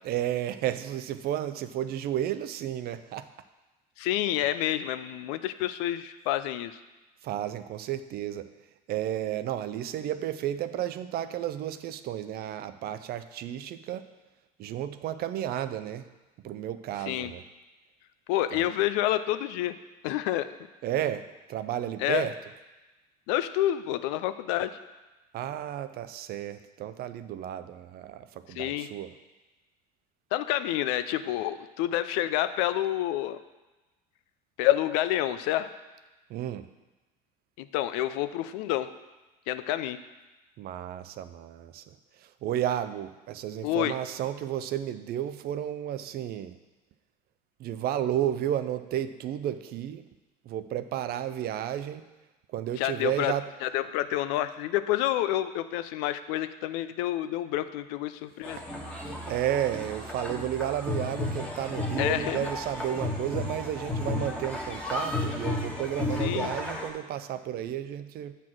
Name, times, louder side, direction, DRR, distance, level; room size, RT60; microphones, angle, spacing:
voice 1, 0.0-3.3 7.2-8.5 8.9-14.1 14.6-16.1 16.4-17.4 18.5-18.7 20.8-22.3 25.3-29.1 36.3-36.7 40.6-46.6 47.6-50.1 50.5-52.0 52.5-53.5 59.3-68.3, right 11 dB, 50° right, 12 dB, 0.5 m, -32 dB
voice 2, 4.0-6.8 17.1-17.3 18.3-19.7 20.0-20.5 22.0-22.3 23.3-24.8 28.5-28.9 30.3-33.4 34.6-35.7 37.6-38.9 39.5-40.0 43.6-43.9 52.8-53.3 53.6-58.6 62.0-62.5 66.2-66.5, left 13 dB, 70° left, 12 dB, 0.5 m, -28 dB
sound 1, 58.4-66.9, left 2 dB, 5° left, 1.4 m, -33 dB
7.4 x 4.2 x 6.1 m, 1.1 s
hypercardioid pair, 75°, 20 cm